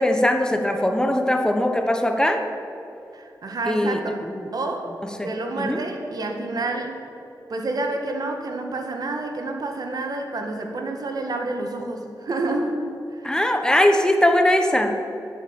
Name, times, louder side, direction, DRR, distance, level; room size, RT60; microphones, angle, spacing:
voice 1, 0.0-2.4 3.7-4.5 5.2-5.3 5.6-5.8 13.2-14.9, left 1 dB, 10° left, 5 dB, 1.1 m, -20 dB
voice 2, 3.1-4.2 4.5-7.0 7.5-12.8 13.1-13.3, right 2 dB, 65° right, 3 dB, 1.8 m, -29 dB
11.0 x 8.3 x 8.9 m, 2.8 s
wide cardioid pair, 85°, 7 cm